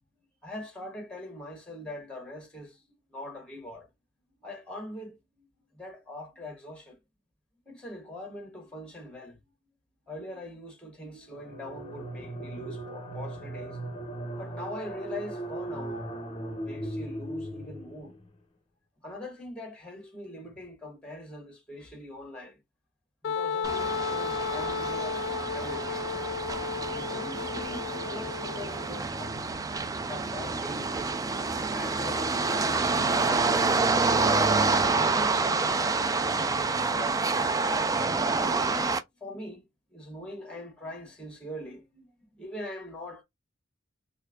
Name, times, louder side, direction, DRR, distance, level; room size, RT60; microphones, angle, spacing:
voice 1, 0.4-2.8 3.1-3.9 4.4-5.5 5.7-7.0 7.6-9.4 10.1-16.1 16.6-18.1 19.0-22.6 23.2-26.3 26.9-29.5 29.9-31.0 31.7-34.4 34.9-37.8 38.4-38.9 39.2-39.6 39.9-43.2, left 1 dB, 5° left, 1.4 m, -42 dB
sound 1, 11.3-18.2, right 1 dB, 30° left, 0.7 m, -38 dB
Wind instrument woodwind instrument, 23.2-28.9, left 5 dB, 60° left, 0.4 m, -33 dB
sound 2, 23.6-39.0, right 3 dB, 20° right, 0.3 m, -28 dB
4.4 x 2.5 x 2.3 m
head